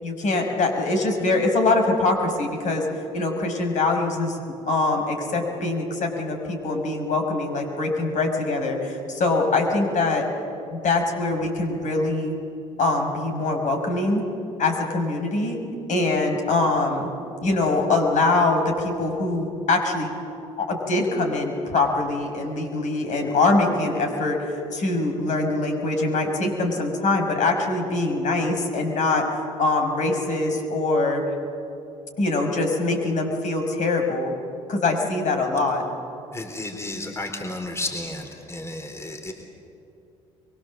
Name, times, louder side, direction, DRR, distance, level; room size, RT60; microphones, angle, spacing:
voice 1, 0.0-2.8 3.1-4.4 4.7-10.2 10.7-12.3 12.8-14.2 14.6-15.6 15.9-17.1 17.4-20.1 20.6-29.2 29.6-31.2 32.2-34.3 34.7-35.8, left 2 dB, 55° left, 3 dB, 5.6 m, -23 dB
voice 2, 36.3-39.3, left 2 dB, 15° left, 3 dB, 3.9 m, -32 dB
24.5 x 23.5 x 7.6 m, 2.5 s
hypercardioid pair, 60°, 16 cm